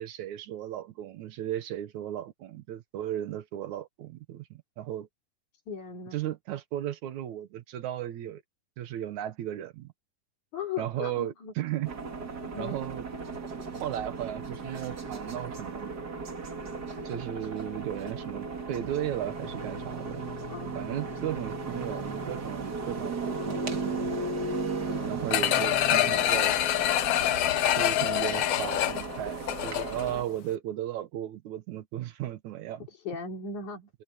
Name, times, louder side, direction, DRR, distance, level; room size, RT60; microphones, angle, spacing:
voice 1, 0.0-5.1 6.1-8.4 8.8-9.9 10.8-11.9 12.6-13.1 13.8-15.9 17.0-20.3 20.7-24.1 25.0-26.5 27.8-32.9, right 12 dB, 70° right, 2.3 m, -35 dB
voice 2, 5.7-6.2 10.5-11.5 12.4-12.8 20.4-20.8 24.9-25.2 32.9-33.9, left 5 dB, 60° left, 5.3 m, -38 dB
sound 1, 11.8-30.2, right 3 dB, 30° right, 2.3 m, -36 dB
sound 2, 25.3-30.1 30.5-30.6, left 13 dB, 75° left, 1.4 m, -26 dB
omnidirectional pair, 3.9 m